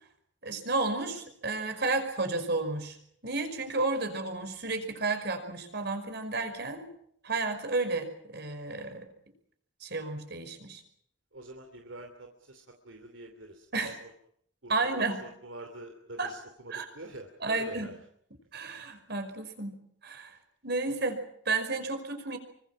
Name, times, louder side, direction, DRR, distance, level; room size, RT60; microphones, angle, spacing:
voice 1, 0.4-3.0 3.2-6.9 7.2-9.1 9.8-10.8 13.7-14.0 14.7-15.3 16.2-16.3 16.7-16.9 17.4-17.9 18.5-20.4 20.6-22.4, right 3 dB, 55° right, 7 dB, 5.4 m, -32 dB
voice 2, 11.3-13.7 14.6-17.9, right 2 dB, 80° right, 4 dB, 2.9 m, -45 dB
26.5 x 24.5 x 6.1 m, 0.68 s
head